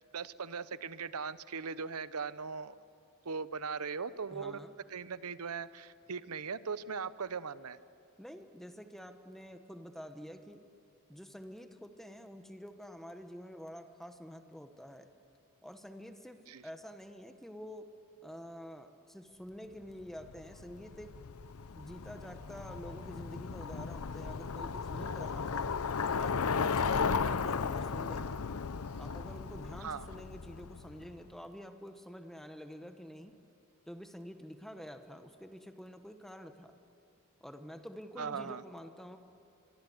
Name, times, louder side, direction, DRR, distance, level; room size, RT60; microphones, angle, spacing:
voice 1, 0.1-2.8 3.2-4.6 4.9-7.8 16.5-16.6 27.1-27.2 29.8-30.1 38.2-38.6, right 5 dB, 85° right, 15 dB, 0.8 m, -39 dB
voice 2, 4.3-4.7 8.2-10.6 11.1-15.1 15.6-16.4 16.6-17.9 18.2-21.1 21.8-25.6 26.1-28.4 29.0-33.3 33.9-36.7 37.4-39.2, equal, ahead, 7 dB, 1.0 m, -48 dB
Bicycle, 20.2-31.1, left 5 dB, 75° left, 0.6 m, -35 dB
24.5 x 24.5 x 7.9 m, 2.5 s
head